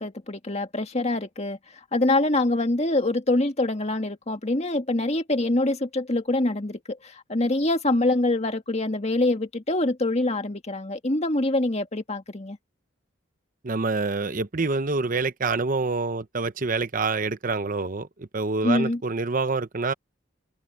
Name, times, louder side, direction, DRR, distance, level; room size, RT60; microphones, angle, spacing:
voice 1, 0.0-1.6 1.9-12.6 18.6-19.0, left 2 dB, 35° left, 1.7 m, -25 dB
voice 2, 13.6-19.9, right 3 dB, 45° right, 0.8 m, -26 dB
head